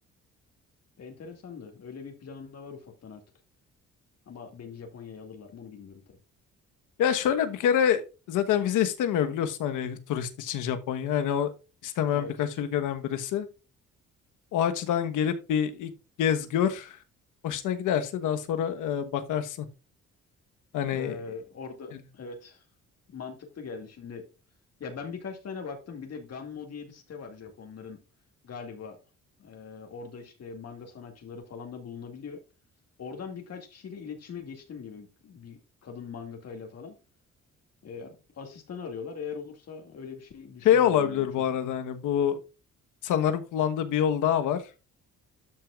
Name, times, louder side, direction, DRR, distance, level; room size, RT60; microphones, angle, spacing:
voice 1, 1.0-3.2 4.3-6.2 12.1-12.3 20.9-22.6 23.1-24.3 24.8-28.0 28.4-29.0 29.4-32.4 33.0-37.0 37.8-41.3, left 5 dB, 55° left, 2.2 m, -41 dB
voice 2, 7.0-8.0 8.3-11.5 11.8-13.5 14.5-15.9 16.2-17.0 17.4-19.7 20.7-21.2 40.6-42.4 43.0-44.6, left 9 dB, 85° left, 1.2 m, -26 dB
12.5 x 5.9 x 2.4 m
cardioid pair, 90°, 30 cm